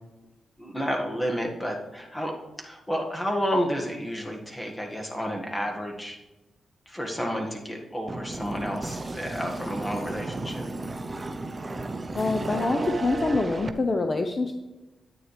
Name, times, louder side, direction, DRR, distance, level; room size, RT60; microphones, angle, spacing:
voice 1, 0.6-2.3 2.6-6.2 6.9-10.7, equal, 15° left, 1 dB, 1.8 m, -30 dB
sound 1, 8.1-13.7, right 3 dB, 30° right, 0.7 m, -34 dB
voice 2, 12.1-14.5, left 3 dB, 40° left, 5 dB, 0.7 m, -25 dB
10.0 x 8.8 x 3.3 m, 1.1 s
cardioid pair, 85°, 0 cm